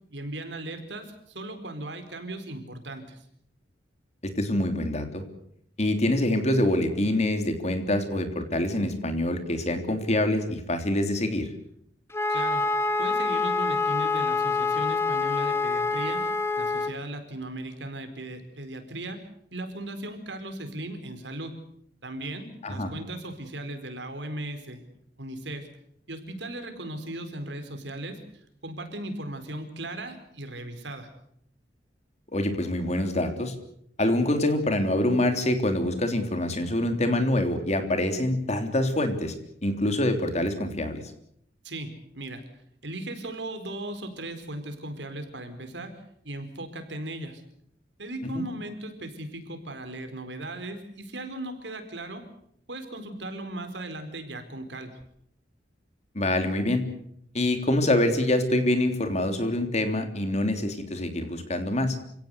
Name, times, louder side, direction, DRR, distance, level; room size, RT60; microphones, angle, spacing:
voice 1, 0.1-3.2 12.3-12.6 13.0-16.2 16.5-19.2 19.5-21.5 22.0-25.7 26.1-28.2 28.6-31.1 41.6-42.4 42.8-45.9 46.2-47.4 48.0-52.2 52.7-54.9, right 1 dB, 80° right, 7 dB, 4.4 m, -37 dB
voice 2, 4.2-5.2 5.8-11.5 22.6-22.9 32.3-33.5 34.0-39.3 39.6-41.0 48.3-48.5 56.1-56.9 57.3-62.0, left 1 dB, 40° left, 7 dB, 3.4 m, -25 dB
Wind instrument woodwind instrument, 12.1-16.9, left 4 dB, 15° left, 1.9 m, -26 dB
28.0 x 17.0 x 8.2 m, 0.72 s
head